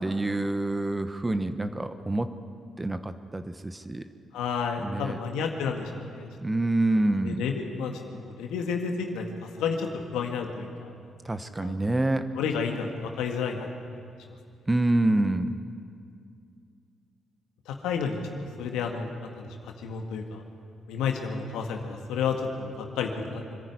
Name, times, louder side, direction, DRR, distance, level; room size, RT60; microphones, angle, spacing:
voice 1, 0.0-2.3 2.8-4.0 4.8-5.2 6.4-7.4 11.2-12.3 14.7-15.6, right 2 dB, 20° right, 10 dB, 1.1 m, -27 dB
voice 2, 4.3-6.3 7.2-10.9 11.6-11.9 12.3-13.7 17.7-18.2 18.6-20.4 20.9-23.6, left 5 dB, 85° left, 3 dB, 1.8 m, -31 dB
25.5 x 10.5 x 9.6 m, 2.4 s
supercardioid pair, 60°, 0 cm